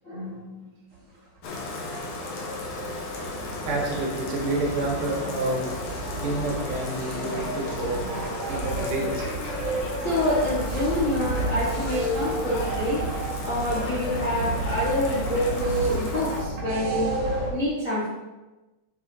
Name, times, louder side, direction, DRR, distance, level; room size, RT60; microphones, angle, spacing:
voice 1, 0.0-0.7 9.6-9.7 10.0-13.0 13.4-17.1 17.5-18.1, left 1 dB, 45° left, -7 dB, 1.0 m, -27 dB
Bathtub (filling or washing), 1.4-16.4, left 3 dB, 65° left, 2.0 m, -36 dB
sound 1, 1.4-17.5, right 2 dB, 55° right, 2.6 m, -32 dB
voice 2, 3.7-5.6 6.2-8.1 8.5-9.2, right 2 dB, 75° right, -1 dB, 2.8 m, -29 dB
Male speech man speaking / Yell / Laughter, 8.5-10.6 11.3-13.0 13.7-15.5, left 3 dB, 85° left, 2.8 m, -39 dB
7.0 x 6.8 x 2.7 m, 1.1 s
omnidirectional pair, 3.7 m